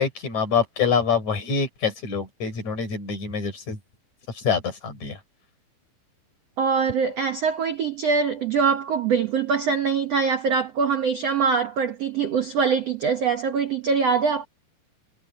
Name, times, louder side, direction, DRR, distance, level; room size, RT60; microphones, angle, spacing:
voice 1, 0.0-3.8 4.4-5.2, left 6 dB, 40° left, 6.0 m, -25 dB
voice 2, 6.6-14.5, right 5 dB, 75° right, 1.4 m, -23 dB
omnidirectional pair, 5.0 m